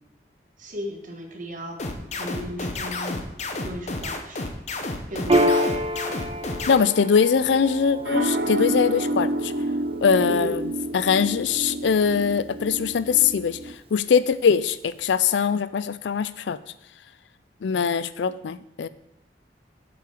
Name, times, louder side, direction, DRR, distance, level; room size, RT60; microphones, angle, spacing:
voice 1, 0.6-3.2 3.6-4.5 5.1-5.7 10.3-10.6, left 1 dB, 50° right, 3 dB, 1.3 m, -35 dB
sound 1, 1.8-6.8, left 2 dB, 40° left, 0.8 m, -30 dB
Piano, 5.3-12.2, equal, 30° right, 0.6 m, -29 dB
voice 2, 6.7-9.5 10.0-10.6 10.9-13.6 13.9-16.6 17.6-18.9, left 6 dB, 85° left, 15 dB, 0.4 m, -22 dB
sound 2, 7.4-13.7, right 1 dB, 70° right, 0.6 m, -29 dB
7.7 x 5.6 x 4.9 m, 0.85 s
head